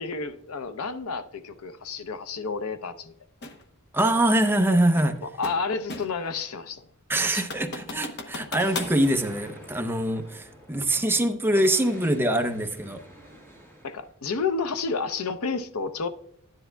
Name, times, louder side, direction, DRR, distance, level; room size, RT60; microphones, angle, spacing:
voice 1, 0.0-3.1 5.2-6.8 7.3-7.5 13.8-16.1, left 4 dB, 90° left, 0.7 m, -30 dB
sound 1, 3.4-3.6 5.0-6.3 6.7-6.8 7.2-9.0, left 3 dB, 50° left, 0.9 m, -36 dB
voice 2, 3.9-5.2 7.1-13.0, right 1 dB, 10° right, 0.6 m, -24 dB
Explosion, 8.6-11.0 11.5-14.1, equal, 10° left, 1.5 m, -46 dB
12.0 x 10.0 x 2.2 m
head